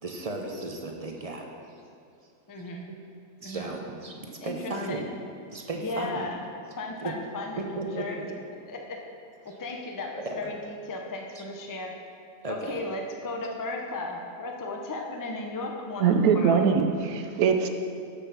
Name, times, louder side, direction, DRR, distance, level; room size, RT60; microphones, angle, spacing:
voice 1, 0.0-1.5 2.6-2.7 3.4-5.1 5.5-6.3 7.0-7.1 7.6-8.2 9.4-9.6 10.2-10.5 11.3-11.4 12.4-12.8, right 2 dB, 35° right, 1 dB, 0.6 m, -35 dB
voice 2, 2.5-2.9 3.4-3.7 4.4-4.5 4.9-5.0 5.8-6.4 6.8-8.2 8.7-9.0 9.4-10.6 10.9-11.9 12.5-16.7, left 2 dB, 20° left, 1 dB, 0.5 m, -35 dB
voice 3, 16.0-17.7, right 6 dB, 75° right, 6 dB, 1.1 m, -22 dB
7.8 x 6.8 x 5.9 m, 2.4 s
omnidirectional pair, 1.6 m